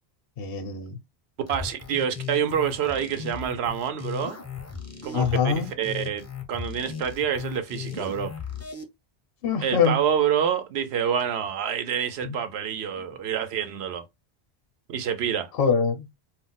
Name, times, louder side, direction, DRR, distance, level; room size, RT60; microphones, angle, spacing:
voice 1, 0.4-0.9 5.1-5.7 9.4-10.0 12.2-12.3 15.6-16.1, left 6 dB, 65° left, 0.8 m, -23 dB
sound 1, 1.5-8.8, left 6 dB, 20° left, 0.4 m, -37 dB
voice 2, 1.5-4.4 5.0-8.3 9.6-14.1 14.9-15.5, right 8 dB, 85° right, 0.9 m, -27 dB
2.3 x 2.1 x 3.7 m
omnidirectional pair, 1.1 m